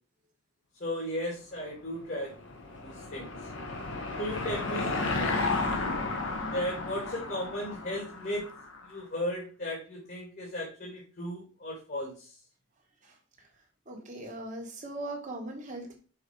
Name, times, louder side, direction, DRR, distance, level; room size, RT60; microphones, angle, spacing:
voice 1, 0.8-2.3 2.8-3.5 4.2-5.4 6.5-8.5 8.8-12.3, left 1 dB, 45° left, -2 dB, 2.1 m, -36 dB
Car passing by / Engine, 2.0-8.8, left 3 dB, 60° left, 1.4 m, -33 dB
voice 2, 13.0-13.5 13.8-16.0, right 1 dB, 35° right, 1 dB, 1.7 m, -40 dB
5.8 x 4.7 x 4.8 m, 0.38 s
head